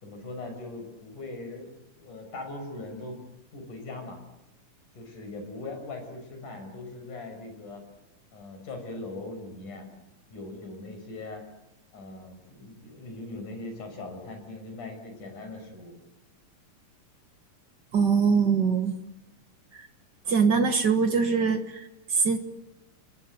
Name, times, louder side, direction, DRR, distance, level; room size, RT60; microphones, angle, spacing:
voice 1, 0.0-1.7 2.0-3.2 3.5-4.2 5.0-7.8 8.3-9.9 10.3-11.4 11.9-16.0, left 2 dB, 65° left, 5 dB, 7.4 m, -40 dB
voice 2, 17.9-18.9 19.7-19.9 20.2-22.4, right 5 dB, 50° right, 8 dB, 1.4 m, -23 dB
29.5 x 21.5 x 8.1 m, 0.89 s
omnidirectional pair, 3.9 m